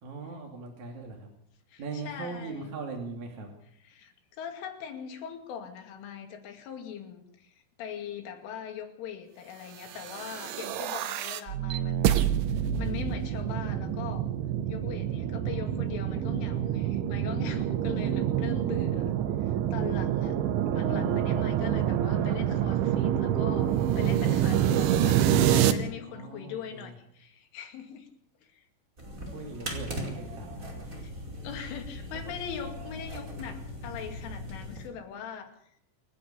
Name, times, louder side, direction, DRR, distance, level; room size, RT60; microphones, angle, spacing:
voice 1, 0.0-1.3 1.8-3.5 24.6-25.3 26.1-27.0 29.2-31.7 32.1-32.4, right 4 dB, 45° right, 1 dB, 3.5 m, -41 dB
voice 2, 1.7-2.7 3.9-12.2 12.6-14.3 14.7-19.1 19.4-20.4 20.7-28.1 28.4-28.7 31.4-35.5, left 8 dB, 90° left, 5 dB, 4.9 m, -41 dB
sound 1, 10.0-25.7, right 10 dB, 80° right, 3.5 m, -27 dB
sound 2, 29.0-34.9, equal, 15° right, 4.9 m, -39 dB
28.5 x 11.0 x 8.5 m, 0.68 s
omnidirectional pair, 5.5 m